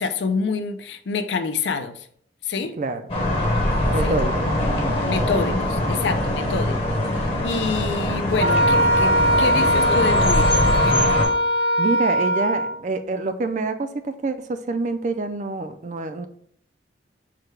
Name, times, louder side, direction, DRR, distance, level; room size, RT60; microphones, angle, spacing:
voice 1, 0.0-2.1 2.4-2.8 4.0-4.2 5.1-6.8 7.4-11.2, left 4 dB, 80° left, 9 dB, 0.5 m, -27 dB
sound 1, 3.1-11.3, left 1 dB, 30° left, 0.8 m, -23 dB
voice 2, 3.9-5.0 11.8-16.3, right 3 dB, 40° right, 9 dB, 0.4 m, -27 dB
Wind instrument woodwind instrument, 8.4-12.8, equal, 90° right, 1.7 m, -20 dB
4.8 x 2.2 x 4.6 m, 0.63 s
head